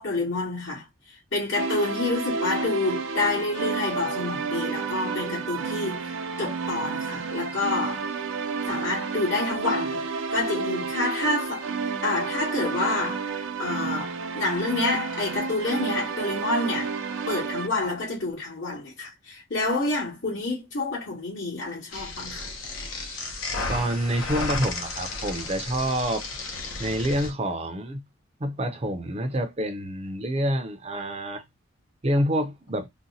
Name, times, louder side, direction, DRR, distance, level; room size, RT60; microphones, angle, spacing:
voice 1, 0.0-8.1 8.7-16.9 17.3-22.5, left 2 dB, 70° left, 2.2 m, -28 dB
sound 1, 1.5-17.7, right 5 dB, 85° right, 0.6 m, -31 dB
sound 2, 21.9-27.3, left 3 dB, 85° left, 0.8 m, -33 dB
voice 2, 23.7-26.2 26.8-28.0 28.4-31.4 32.0-32.9, right 1 dB, 30° right, 0.5 m, -27 dB
3.9 x 2.2 x 2.7 m
head